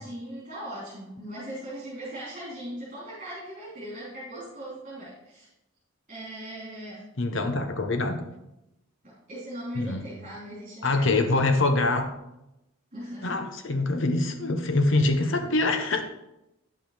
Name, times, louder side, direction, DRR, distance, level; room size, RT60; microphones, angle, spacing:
voice 1, 0.0-5.5 6.1-7.1 9.0-11.5 12.9-13.5, right 1 dB, 35° right, -9 dB, 3.5 m, -39 dB
voice 2, 7.2-8.3 9.7-10.0 10.8-12.1 13.2-16.0, left 2 dB, 60° left, 7 dB, 0.9 m, -24 dB
9.8 x 7.6 x 3.4 m, 0.89 s
head